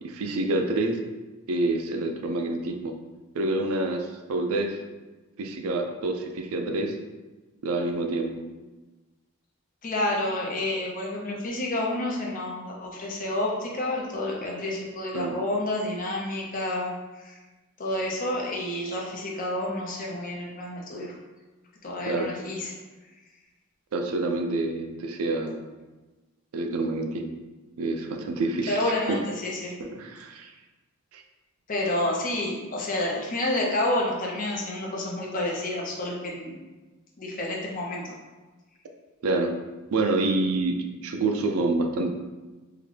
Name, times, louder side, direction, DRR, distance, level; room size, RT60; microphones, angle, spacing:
voice 1, 0.0-1.0 1.5-2.9 3.3-4.8 5.4-7.0 7.6-8.4 15.1-15.4 22.1-22.3 23.9-25.6 26.5-27.4 27.8-28.9 29.8-30.5 31.1-31.2 39.2-39.5 39.9-42.1, right 2 dB, 80° right, 4 dB, 0.4 m, -27 dB
voice 2, 9.8-17.4 17.8-21.2 21.8-22.8 28.7-29.7 31.7-36.6 37.2-38.1, left 1 dB, 40° left, -2 dB, 0.6 m, -29 dB
3.7 x 2.2 x 3.2 m, 1.2 s
head